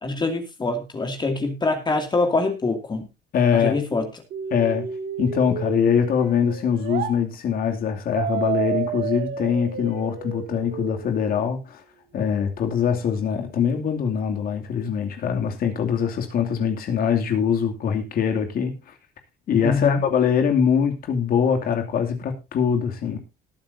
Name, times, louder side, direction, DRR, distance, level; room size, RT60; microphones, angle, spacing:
voice 1, 0.0-3.1 3.5-4.1 19.6-20.0, left 3 dB, 25° left, 2.4 m, -24 dB
voice 2, 3.3-3.8 4.5-4.9 5.2-11.8 12.1-18.7 19.5-23.2, left 7 dB, 60° left, 2.6 m, -23 dB
sound 1, 4.3-7.1 8.1-11.2, right 8 dB, 65° right, 2.3 m, -30 dB
19.5 x 9.3 x 2.7 m
cardioid pair, 110°, 17 cm